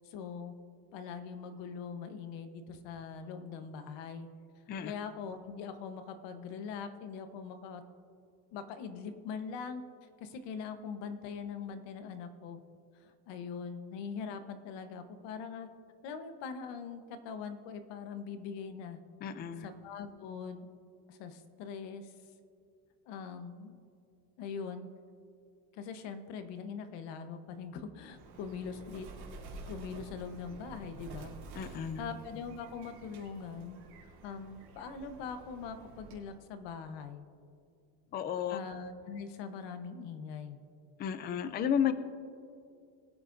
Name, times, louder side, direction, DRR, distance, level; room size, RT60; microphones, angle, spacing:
voice 1, 0.0-0.5 0.9-4.3 4.8-7.8 8.5-9.8 10.2-12.6 13.0-15.7 16.0-19.0 19.6-20.7 21.1-22.1 23.1-23.7 24.4-24.9 25.7-29.1 29.6-31.3 31.7-33.8 34.2-37.3 38.5-40.6, left 6 dB, 65° left, 9 dB, 1.1 m, -42 dB
voice 2, 19.2-19.7 31.6-32.0 38.1-38.6 41.0-41.9, left 8 dB, 25° left, 12 dB, 0.3 m, -32 dB
Bird, 28.1-36.4, right 3 dB, 55° right, 3.0 m, -50 dB
22.5 x 8.9 x 2.6 m, 2.4 s
cardioid pair, 155°, 46 cm